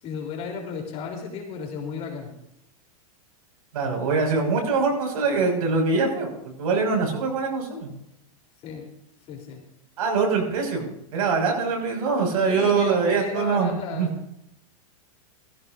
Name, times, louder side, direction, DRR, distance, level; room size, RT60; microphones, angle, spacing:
voice 1, 0.0-2.3 6.5-6.6 8.6-8.9 9.3-9.6 12.5-14.1, left 6 dB, 35° left, 2 dB, 3.5 m, -34 dB
voice 2, 3.7-6.3 6.6-7.9 10.0-14.1, right 4 dB, 75° right, 2 dB, 5.9 m, -23 dB
17.5 x 15.0 x 2.6 m, 0.81 s
supercardioid pair, 150°, 19 cm